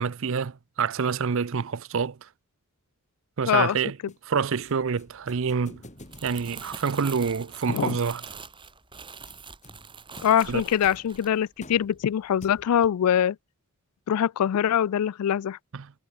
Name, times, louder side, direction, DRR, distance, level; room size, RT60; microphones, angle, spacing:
voice 1, 0.0-2.3 3.4-4.0 4.2-5.8 6.2-8.2 10.5-10.6 15.7-15.9, right 6 dB, 60° right, 0.5 m, -27 dB
voice 2, 3.5-3.8 7.7-8.0 10.2-13.4 14.1-15.6, left 9 dB, 85° left, 0.3 m, -23 dB
sound 1, 4.1-13.0, left 1 dB, 30° left, 8.0 m, -51 dB
Crumpling crinkling, 5.8-12.2 12.6-12.9, right 6 dB, 20° right, 2.5 m, -44 dB
head